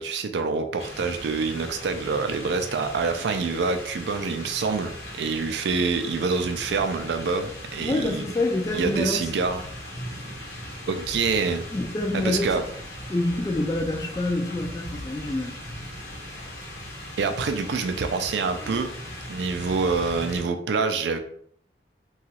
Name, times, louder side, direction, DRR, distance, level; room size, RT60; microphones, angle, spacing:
voice 1, 0.0-8.3 8.7-9.6 10.9-11.6 12.1-12.6 17.2-18.9 19.3-21.2, right 4 dB, 70° right, 7 dB, 0.3 m, -26 dB
sound 1, 0.8-20.4, left 1 dB, 65° left, 0.9 m, -39 dB
voice 2, 7.8-9.3 11.7-12.6 13.1-15.7 18.6-18.8, left 2 dB, 20° left, 2 dB, 0.3 m, -27 dB
2.9 x 2.3 x 2.8 m, 0.64 s
head